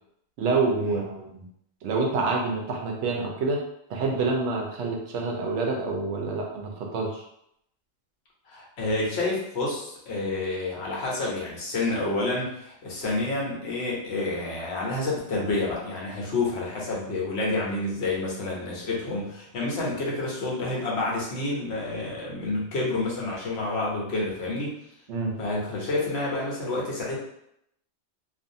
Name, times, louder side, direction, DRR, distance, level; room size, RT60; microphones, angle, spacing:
voice 1, 0.4-1.5 1.8-3.6 3.9-7.2 25.1-25.3, right 3 dB, 80° right, 0 dB, 0.9 m, -27 dB
voice 2, 8.5-24.7 25.4-27.2, left 2 dB, 65° left, -4 dB, 1.0 m, -29 dB
2.5 x 2.5 x 2.6 m, 0.76 s
omnidirectional pair, 1.2 m